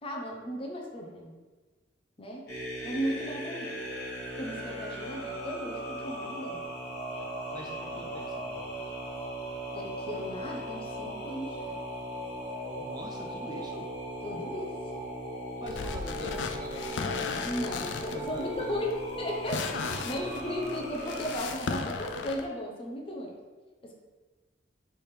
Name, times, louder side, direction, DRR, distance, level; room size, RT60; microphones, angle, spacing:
voice 1, 0.0-1.4 2.2-2.4 2.8-3.7 4.4-6.6 7.9-8.0 9.7-11.8 14.2-14.7 17.4-23.3, equal, 30° left, 0 dB, 0.6 m, -36 dB
sound 1, 2.5-21.4, equal, 55° left, 1.2 m, -38 dB
voice 2, 7.5-8.8 12.8-13.9 15.6-17.4 18.0-18.8 20.0-20.7, right 1 dB, 20° right, 1 dB, 0.3 m, -45 dB
sound 2, 15.7-22.4, left 4 dB, 75° left, 0.4 m, -36 dB
3.4 x 3.3 x 4.3 m, 1.3 s
head